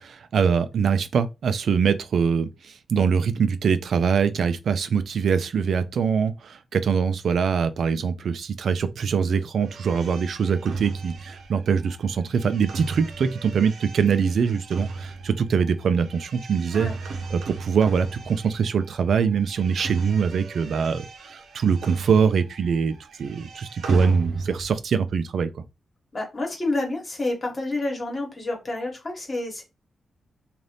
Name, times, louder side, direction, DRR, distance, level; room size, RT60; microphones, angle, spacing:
voice 1, 0.0-16.9 17.3-25.6, right 6 dB, 65° right, 0.3 m, -23 dB
sound 1, 9.6-18.9 19.2-22.6 22.9-24.8, right 4 dB, 85° right, 0.7 m, -34 dB
voice 2, 26.1-29.6, left 2 dB, 30° left, 1.3 m, -29 dB
2.6 x 2.4 x 3.3 m
wide cardioid pair, 120°, 0 cm